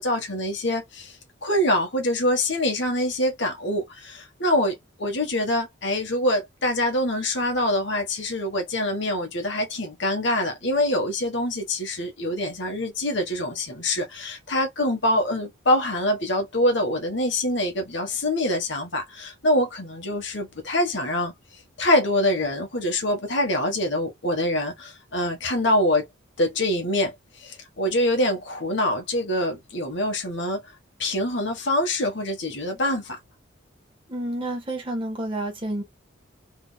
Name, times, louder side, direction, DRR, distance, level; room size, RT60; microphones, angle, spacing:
voice 1, 0.0-26.1 26.4-30.6 31.0-33.2, left 1 dB, 60° left, 1.4 m, -25 dB
voice 2, 34.1-35.8, right 1 dB, 25° right, 1.3 m, -29 dB
3.7 x 3.5 x 2.3 m
head